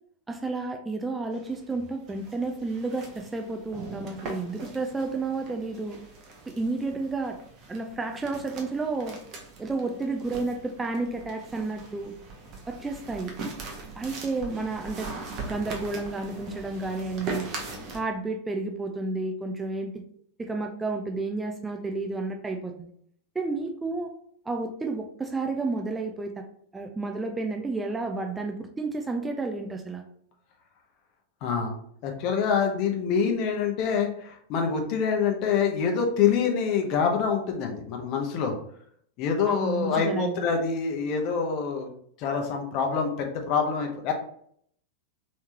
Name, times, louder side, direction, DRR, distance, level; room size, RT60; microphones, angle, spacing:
voice 1, 0.3-6.0 6.5-7.4 7.7-9.2 9.6-12.1 12.7-13.3 14.0-15.1 15.4-17.5 17.9-20.0 20.4-22.9 23.4-24.1 24.5-26.4 26.7-30.0 39.4-40.5, right 3 dB, 10° right, 3 dB, 0.4 m, -31 dB
sound 1, 1.3-18.0, right 3 dB, 35° right, 0.9 m, -41 dB
voice 2, 31.4-31.8 32.0-38.5 39.2-41.9 42.2-44.1, left 6 dB, 40° left, 3 dB, 0.8 m, -26 dB
3.4 x 3.1 x 2.9 m, 0.65 s
figure-of-eight pair, 90°, 0 cm